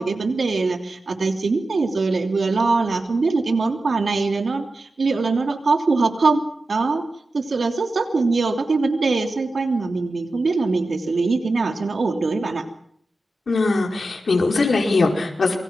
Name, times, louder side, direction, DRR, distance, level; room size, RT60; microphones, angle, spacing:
voice 1, 0.0-7.0 7.3-12.7, right 3 dB, 80° right, 6 dB, 3.1 m, -22 dB
voice 2, 13.5-15.6, left 3 dB, 85° left, 2 dB, 4.8 m, -20 dB
27.5 x 23.5 x 6.1 m, 0.66 s
wide cardioid pair, 90°, 0 cm